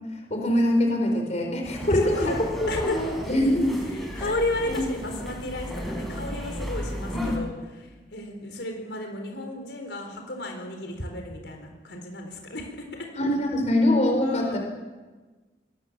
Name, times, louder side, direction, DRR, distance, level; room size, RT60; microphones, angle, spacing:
voice 1, 0.3-2.3 2.6-3.7 4.7-4.8 7.1-7.3 13.2-14.6, left 1 dB, 40° left, 2 dB, 4.6 m, -23 dB
sound 1, 1.6-7.4, equal, ahead, 5.2 m, -34 dB
voice 2, 1.9-2.4 2.7-3.0 3.8-13.1 14.2-14.6, left 1 dB, 80° left, 3 dB, 4.2 m, -33 dB
22.5 x 20.0 x 7.5 m, 1.3 s
head